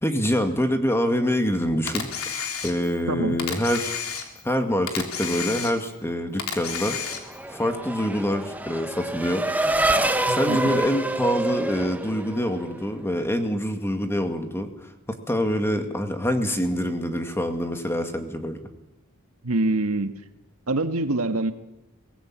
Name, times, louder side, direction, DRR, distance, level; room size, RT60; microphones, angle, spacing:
voice 1, 0.0-2.1 2.6-3.9 4.4-7.0 7.5-9.5 10.3-18.6, equal, 10° left, 6 dB, 2.2 m, -25 dB
Camera, 1.9-3.0 3.4-4.5 4.9-6.0 6.4-7.4, left 7 dB, 70° left, 3.5 m, -31 dB
voice 2, 3.1-3.4 10.3-10.8 19.4-20.1 20.7-21.5, right 2 dB, 80° right, 8 dB, 1.6 m, -25 dB
Race car auto racing / Accelerating revving vroom, 6.8-12.9, right 1 dB, 5° right, 1.1 m, -27 dB
23.0 x 18.5 x 8.8 m, 0.88 s
head